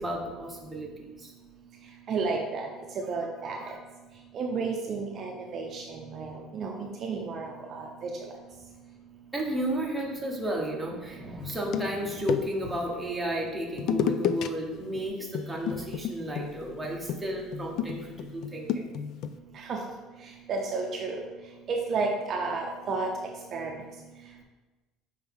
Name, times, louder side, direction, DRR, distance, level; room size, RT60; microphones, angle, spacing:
voice 1, 0.0-1.3 3.5-3.8 9.3-18.9, right 1 dB, 5° right, -3 dB, 1.0 m, -33 dB
voice 2, 2.1-2.7 3.1-3.6 4.3-8.1 19.5-19.8 20.5-21.2 21.7-23.1 23.5-23.8, right 4 dB, 35° right, 0 dB, 0.6 m, -32 dB
sound 1, 11.4-12.8 13.8-14.5 14.8-15.0 15.3-19.4, left 8 dB, 50° left, 0.3 m, -32 dB
6.9 x 4.6 x 3.5 m, 1.2 s
cardioid pair, 160°, 0 cm